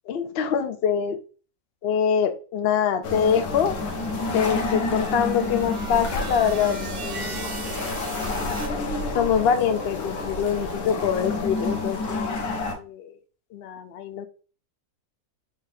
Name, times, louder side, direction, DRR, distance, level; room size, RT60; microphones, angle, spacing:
voice 1, 0.1-1.2 1.8-3.8 4.3-7.3 9.1-12.4 12.7-13.1 13.5-14.3, left 7 dB, 70° left, 8 dB, 0.6 m, -24 dB
sound 1, 3.0-12.8, left 3 dB, 85° left, 1.4 m, -29 dB
sound 2, 3.9-8.7, right 3 dB, 55° right, 0.5 m, -38 dB
4.9 x 3.5 x 2.7 m, 0.37 s
omnidirectional pair, 1.6 m